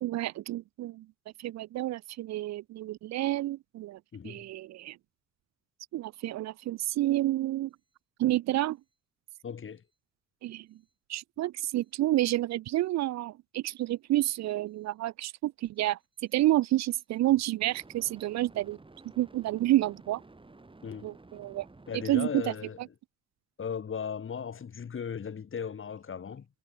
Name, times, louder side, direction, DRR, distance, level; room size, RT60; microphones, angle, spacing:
voice 1, 0.0-1.1 1.4-4.0 4.2-5.0 5.9-7.7 8.2-8.8 10.4-10.7 11.1-16.0 16.3-18.8 19.2-20.2 21.0-21.7 21.9-22.4, right 15 dB, 60° right, 0.4 m, -29 dB
voice 2, 4.1-4.4 9.4-9.8 20.8-21.1 21.9-22.8 23.6-26.5, left 7 dB, 40° left, 2.4 m, -37 dB
sound 1, 12.7-12.9 17.6-22.3, right 2 dB, 15° right, 3.5 m, -53 dB
cardioid pair, 90°, 30 cm